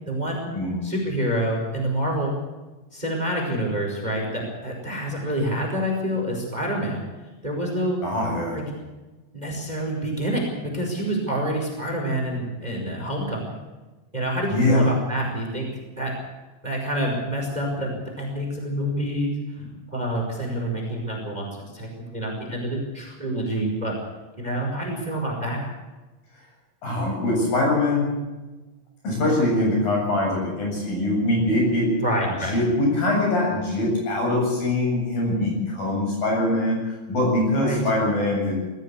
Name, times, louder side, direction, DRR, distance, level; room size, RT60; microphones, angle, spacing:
voice 1, 0.0-0.5 0.8-2.3 2.9-7.0 7.4-8.0 8.5-8.6 9.3-10.4 10.7-13.5 14.1-15.7 16.0-16.1 16.6-19.4 19.9-24.0 24.4-25.7 29.1-29.5 32.0-32.6 37.5-37.8, right 1 dB, 10° right, 1 dB, 4.6 m, -27 dB
voice 2, 8.0-8.6 14.5-14.9 26.8-28.1 29.0-31.9 32.4-38.5, left 1 dB, 65° left, -1 dB, 9.7 m, -23 dB
21.0 x 14.5 x 8.5 m, 1.2 s
omnidirectional pair, 4.3 m